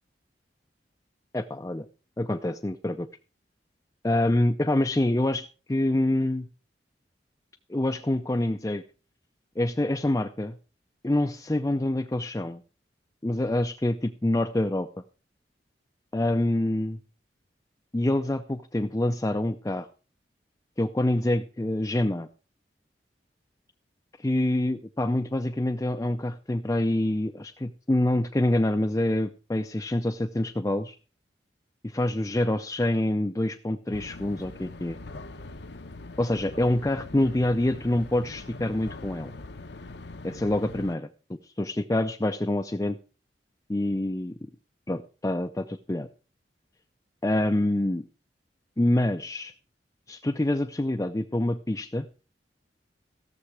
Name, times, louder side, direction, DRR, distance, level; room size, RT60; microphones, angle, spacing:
voice 1, 1.3-1.9 2.2-3.1 4.0-6.5 7.7-8.8 9.6-10.6 11.0-12.6 13.2-14.9 16.1-17.0 17.9-19.9 20.8-22.3 24.2-31.0 31.8-35.0 36.2-39.3 40.2-43.0 43.7-44.5 44.9-46.1 47.2-48.0 48.8-49.5 50.1-52.1, left 1 dB, 15° left, 6 dB, 0.5 m, -26 dB
sound 1, 33.9-41.0, left 2 dB, 70° left, 0.9 m, -42 dB
16.0 x 6.9 x 4.8 m, 0.36 s
head